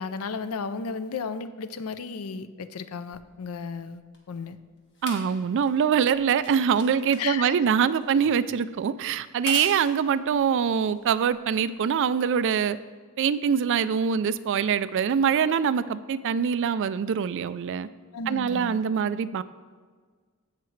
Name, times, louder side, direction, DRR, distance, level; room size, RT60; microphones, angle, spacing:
voice 1, 0.0-4.0 4.3-4.6 7.2-7.5 18.1-18.8, left 5 dB, 75° left, 12 dB, 0.5 m, -34 dB
sound 1, 3.1-11.7 12.6-12.7, left 3 dB, 55° left, 1.5 m, -43 dB
voice 2, 5.0-12.8 13.2-17.9 18.3-19.4, right 7 dB, 55° right, 15 dB, 0.3 m, -24 dB
15.5 x 5.8 x 3.2 m, 1.5 s
head